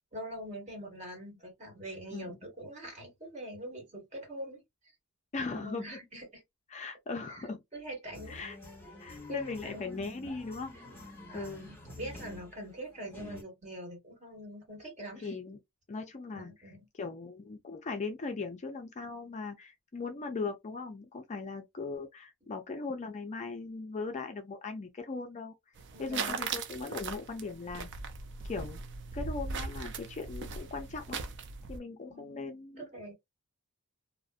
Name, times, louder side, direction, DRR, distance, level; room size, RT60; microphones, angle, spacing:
voice 1, 0.0-4.6 5.5-6.4 7.3-7.4 7.7-8.4 9.3-9.9 11.3-15.3 16.3-16.9 25.9-26.5 32.1-33.1, right 1 dB, 30° right, 1.6 m, -44 dB
voice 2, 5.3-6.0 6.7-7.6 8.3-8.6 9.0-10.8 11.3-11.7 15.2-15.6 15.9-25.5 26.0-27.9 28.4-28.8 29.1-31.2 31.7-32.9, left 4 dB, 30° left, 0.4 m, -39 dB
sound 1, 8.1-13.4, left 1 dB, 10° left, 1.0 m, -48 dB
sound 2, 25.8-31.8, right 5 dB, 55° right, 0.4 m, -39 dB
2.5 x 2.1 x 2.4 m
head